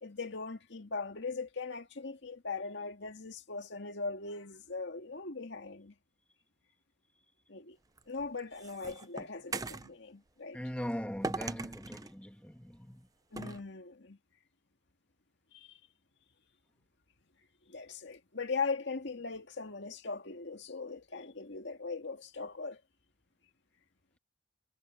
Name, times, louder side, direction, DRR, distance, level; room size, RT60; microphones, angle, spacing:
voice 1, 0.0-5.9 7.5-7.8 8.1-10.6 13.3-14.2 15.5-15.8 17.7-22.8, left 4 dB, 65° left, 2.1 m, -40 dB
sound 1, 8.0-9.9 11.2-12.1 13.4-13.6, right 3 dB, 20° right, 0.6 m, -39 dB
voice 2, 10.5-13.1, equal, 5° left, 1.9 m, -40 dB
head